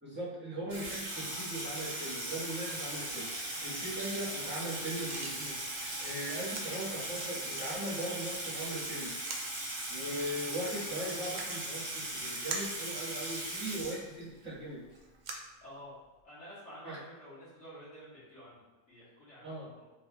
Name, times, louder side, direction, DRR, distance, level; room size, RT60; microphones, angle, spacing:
voice 1, 0.0-9.1 9.9-14.8 16.8-17.0 19.4-19.7, right 1 dB, 10° right, -10 dB, 1.1 m, -39 dB
Water tap faucet / Sink (filling or washing), 0.7-14.4, right 1 dB, 35° right, 0.7 m, -39 dB
sound 1, 1.1-13.2 14.9-15.0, left 1 dB, 75° left, 1.4 m, -54 dB
sound 2, 5.0-16.2, right 3 dB, 90° right, 0.4 m, -48 dB
voice 2, 15.6-15.9 16.2-19.9, equal, 60° left, -10 dB, 1.8 m, -51 dB
3.7 x 3.3 x 2.3 m, 1.2 s
omnidirectional pair, 1.4 m